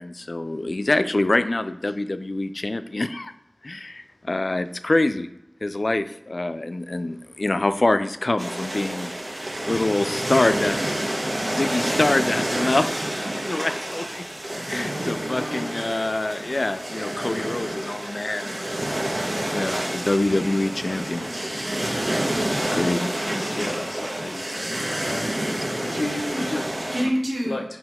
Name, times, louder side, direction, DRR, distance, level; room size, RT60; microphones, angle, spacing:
voice 1, 0.0-3.3 3.6-5.3 5.6-9.1 9.7-11.1 11.4-14.2 14.7-18.7 19.5-21.3 21.5-21.6 22.7-23.1, left 2 dB, 65° left, 11 dB, 0.4 m, -25 dB
sound 1, 8.4-27.0, right 1 dB, 45° right, 1.2 m, -28 dB
voice 2, 14.9-15.7 21.9-22.5 23.2-23.9 24.2-24.3 26.3-26.4 26.7-27.6, equal, 85° right, -4 dB, 1.8 m, -30 dB
voice 3, 23.2-26.6 27.4-27.6, left 2 dB, 90° left, 3 dB, 0.8 m, -33 dB
5.8 x 4.6 x 3.6 m, 0.84 s
wide cardioid pair, 45°, 0 cm